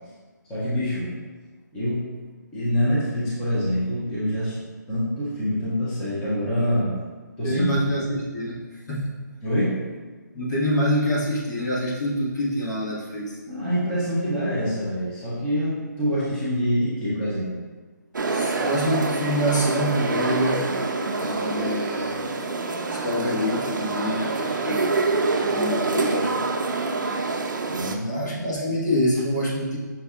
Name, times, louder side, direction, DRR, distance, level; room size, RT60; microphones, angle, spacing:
voice 1, 0.5-1.2 1.7-2.1 2.5-4.5 4.9-7.0 7.4-7.9 9.4-9.8 13.5-17.6 27.7-28.4, equal, 5° left, -10 dB, 0.5 m, -25 dB
voice 2, 7.4-8.6 8.9-9.1 10.3-13.3 18.3-20.7 21.2-22.2 22.9-24.8 25.3-26.4 28.0-29.8, equal, 65° left, -6 dB, 1.4 m, -26 dB
sound 1, 18.1-28.0, right 3 dB, 80° right, 0.5 m, -26 dB
6.1 x 2.6 x 2.3 m, 1.4 s
hypercardioid pair, 170°, 10 cm